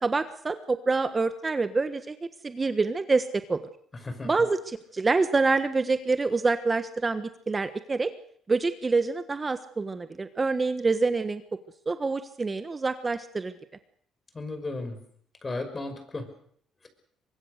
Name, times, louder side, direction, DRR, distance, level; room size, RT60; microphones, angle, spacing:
voice 1, 0.0-2.2 2.4-3.7 4.2-8.1 8.5-11.4 11.9-13.5, right 3 dB, 25° right, 10 dB, 1.4 m, -26 dB
voice 2, 14.3-15.0 15.4-16.3, left 2 dB, 25° left, 9 dB, 5.7 m, -34 dB
24.0 x 21.5 x 6.7 m, 0.62 s
cardioid pair, 85°, 0 cm